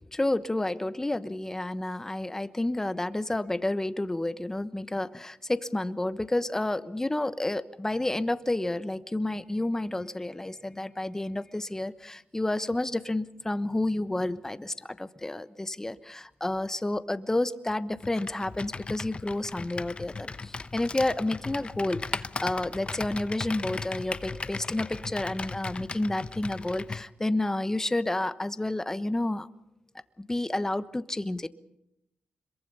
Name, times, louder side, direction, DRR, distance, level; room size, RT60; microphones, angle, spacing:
voice 1, 0.1-29.5 30.2-31.5, left 1 dB, 15° left, 12 dB, 1.2 m, -30 dB
Computer keyboard, 18.0-27.1, left 4 dB, 35° left, 0.9 m, -37 dB
26.0 x 22.5 x 5.6 m, 0.84 s
cardioid pair, 70°, 3 cm